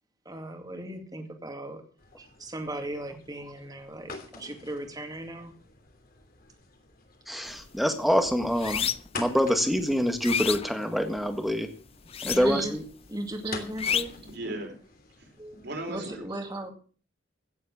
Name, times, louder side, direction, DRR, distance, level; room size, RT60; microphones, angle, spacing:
voice 1, 0.3-1.8 2.2-5.5 12.2-12.8 13.1-14.1 15.4-15.6 15.9-16.7, right 1 dB, 20° right, 5 dB, 2.3 m, -37 dB
sound 1, 2.0-16.2, left 4 dB, 50° left, 3.0 m, -47 dB
voice 2, 7.3-8.9 9.1-11.7 12.2-12.8, equal, ahead, 6 dB, 1.7 m, -26 dB
sound 2, 7.5-7.7 8.1-9.2 9.7-11.4 12.0-12.8 13.1-14.3, left 8 dB, 30° left, 0.6 m, -30 dB
voice 3, 14.3-14.8 15.2-15.3 15.6-16.2, right 2 dB, 60° right, 4 dB, 4.4 m, -36 dB
16.0 x 7.6 x 7.2 m, 0.41 s
head